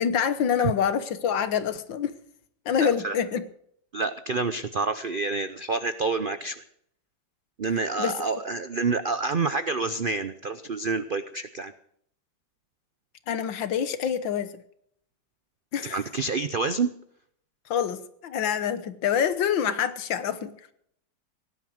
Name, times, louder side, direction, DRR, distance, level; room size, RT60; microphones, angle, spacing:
voice 1, 0.0-2.2 2.7-3.4 8.0-8.1 13.3-14.6 15.7-16.0 17.7-20.5, left 8 dB, 85° left, 12 dB, 1.8 m, -26 dB
voice 2, 2.8-3.2 3.9-6.6 7.6-11.7 15.8-16.9, right 4 dB, 85° right, 11 dB, 0.4 m, -28 dB
17.5 x 11.0 x 6.4 m, 0.69 s
omnidirectional pair, 2.0 m